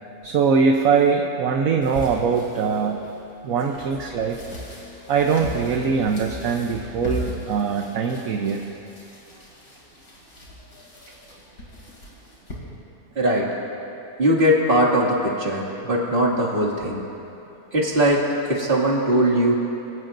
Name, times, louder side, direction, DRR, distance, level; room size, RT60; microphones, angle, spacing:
voice 1, 0.2-3.1 3.4-4.4 5.1-8.6, right 5 dB, 65° right, 3 dB, 1.2 m, -22 dB
sound 1, 1.8-12.5, equal, 70° left, 3.4 m, -38 dB
voice 2, 13.2-13.5 14.2-17.0 17.7-19.5, right 1 dB, 35° right, -3 dB, 2.4 m, -20 dB
25.5 x 16.5 x 2.6 m, 2.8 s
omnidirectional pair, 1.6 m